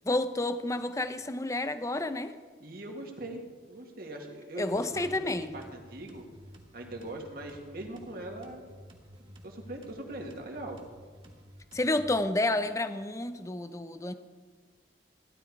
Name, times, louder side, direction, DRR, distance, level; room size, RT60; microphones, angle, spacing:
voice 1, 0.1-2.3 4.6-5.5 11.7-14.1, left 2 dB, 15° left, 11 dB, 0.6 m, -30 dB
voice 2, 2.6-3.4 3.7-6.2 6.7-8.6 9.2-10.8, right 1 dB, 55° right, 1 dB, 2.0 m, -41 dB
sound 1, 4.7-12.2, equal, 30° right, 2.0 m, -52 dB
16.0 x 11.5 x 4.7 m, 1.5 s
head